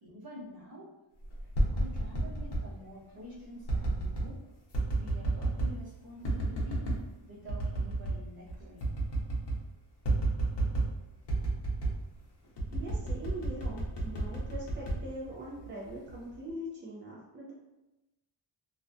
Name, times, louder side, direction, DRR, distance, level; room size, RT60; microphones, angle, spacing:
voice 1, 0.0-1.0 1.7-4.4 4.9-6.9 7.2-9.1, equal, 50° right, -7 dB, 1.0 m, -48 dB
sound 1, 1.3-2.7 3.7-4.3 4.7-5.8 6.2-7.0 7.5-8.2 8.5-8.6 8.8-9.6 10.0-11.0 11.3-12.0 12.6-15.7 16.1-16.5, right 2 dB, 60° left, 0.7 m, -31 dB
voice 2, 12.7-17.5, right 1 dB, 25° right, -4 dB, 0.4 m, -42 dB
2.4 x 2.1 x 2.5 m, 0.98 s
wide cardioid pair, 140°, 47 cm